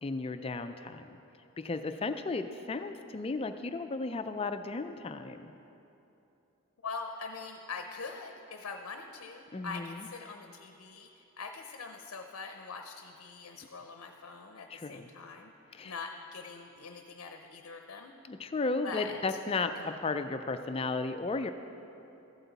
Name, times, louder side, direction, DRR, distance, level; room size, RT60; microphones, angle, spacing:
voice 1, 0.0-1.2 1.6-5.5 9.5-10.1 14.7-15.1 15.7-15.9 18.2-21.5, left 3 dB, 25° left, 8 dB, 0.3 m, -34 dB
voice 2, 6.8-15.5 15.8-18.1 18.8-19.9, left 4 dB, 65° left, 4 dB, 0.6 m, -43 dB
14.5 x 8.0 x 4.0 m, 2.9 s
head